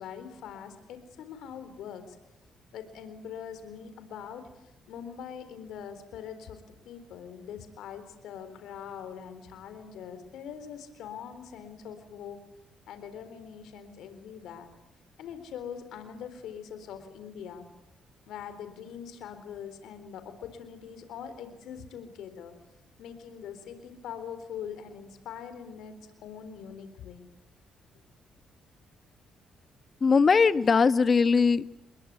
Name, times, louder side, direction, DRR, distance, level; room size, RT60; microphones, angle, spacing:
voice 1, 0.0-2.2 2.7-12.4 12.9-14.7 15.2-17.7 18.3-22.5 23.0-27.3, left 8 dB, 80° left, 9 dB, 4.0 m, -43 dB
voice 2, 30.0-31.8, left 5 dB, 40° left, 13 dB, 1.3 m, -21 dB
28.5 x 21.5 x 9.6 m, 0.84 s
cardioid pair, 90°, 0 cm